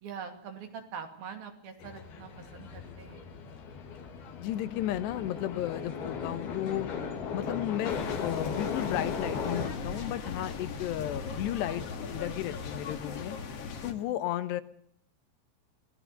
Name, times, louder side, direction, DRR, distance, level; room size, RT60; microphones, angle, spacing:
voice 1, 0.0-3.3, right 7 dB, 65° right, 5 dB, 4.3 m, -43 dB
sound 1, 1.8-9.7, left 6 dB, 70° left, 4.3 m, -37 dB
voice 2, 4.4-6.9 7.3-13.4 13.8-14.6, left 13 dB, 90° left, 12 dB, 3.2 m, -34 dB
sound 2, 7.9-13.9, left 5 dB, 50° left, 2.2 m, -39 dB
24.0 x 17.0 x 6.8 m, 0.71 s
omnidirectional pair, 4.7 m